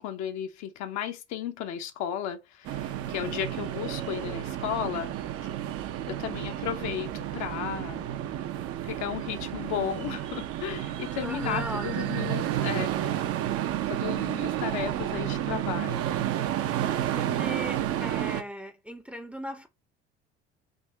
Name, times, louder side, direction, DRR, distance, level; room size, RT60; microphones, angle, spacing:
voice 1, 0.0-5.1 6.1-8.2 8.8-13.2 13.9-16.1, left 9 dB, 55° left, 0.8 m, -34 dB
sound 1, 2.6-18.4, right 12 dB, 45° right, 0.6 m, -31 dB
voice 2, 11.2-12.3 17.1-19.7, equal, 5° right, 0.6 m, -38 dB
3.7 x 2.8 x 4.1 m
figure-of-eight pair, 55°, 33 cm